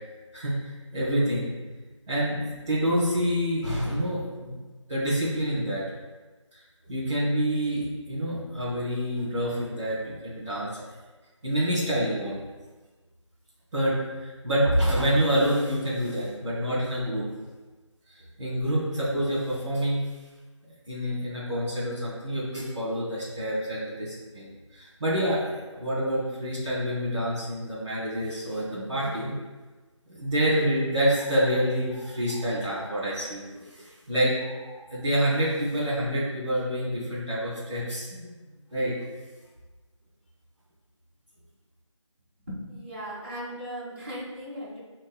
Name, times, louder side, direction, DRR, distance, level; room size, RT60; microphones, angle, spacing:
voice 1, 0.3-1.5 2.1-4.6 4.9-5.8 6.5-6.6 6.9-10.8 11.4-12.4 13.7-17.3 18.4-20.1 20.8-29.3 30.1-38.4 38.7-38.9, equal, 5° right, -18 dB, 1.3 m, -27 dB
voice 2, 42.4-44.8, equal, 25° right, -9 dB, 2.2 m, -37 dB
12.0 x 4.5 x 2.2 m, 1.3 s
figure-of-eight pair, 170°, 16 cm